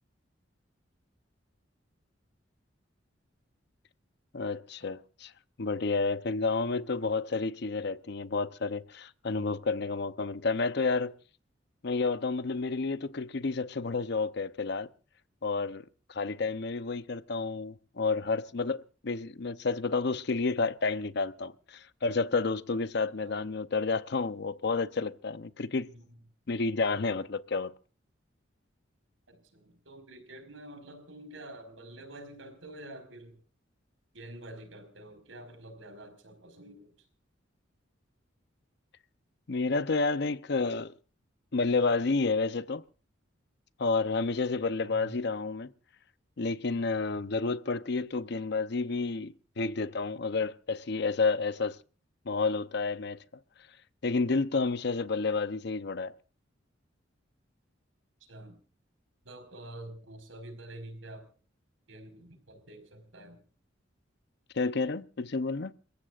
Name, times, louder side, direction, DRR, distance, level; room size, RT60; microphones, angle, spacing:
voice 1, 4.3-5.3 5.6-11.1 11.8-14.9 15.4-25.9 26.5-27.7 39.5-40.9 41.5-42.8 43.8-45.7 46.4-51.8 52.3-53.2 54.0-56.1 64.5-65.7, left 4 dB, 60° left, 0.7 m, -30 dB
voice 2, 25.8-26.1 29.3-33.4 34.1-36.9 44.8-45.1 58.3-58.6 59.2-61.2 61.9-63.4, right 1 dB, 90° right, 5.0 m, -47 dB
29.5 x 15.0 x 2.4 m
head